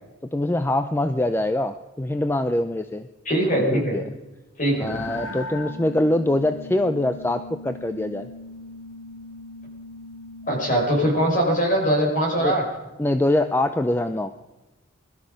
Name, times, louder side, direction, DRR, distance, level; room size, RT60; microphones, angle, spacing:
voice 1, 0.3-3.1 3.6-4.0 4.8-8.3 12.4-12.6 13.0-14.3, left 1 dB, 10° left, 9 dB, 0.4 m, -24 dB
voice 2, 3.2-3.9 4.6-4.9 10.5-12.6, right 1 dB, 40° left, 0 dB, 5.3 m, -21 dB
sound 1, 4.9-11.2, left 2 dB, 70° left, 1.4 m, -39 dB
21.5 x 13.0 x 5.2 m, 1.1 s
head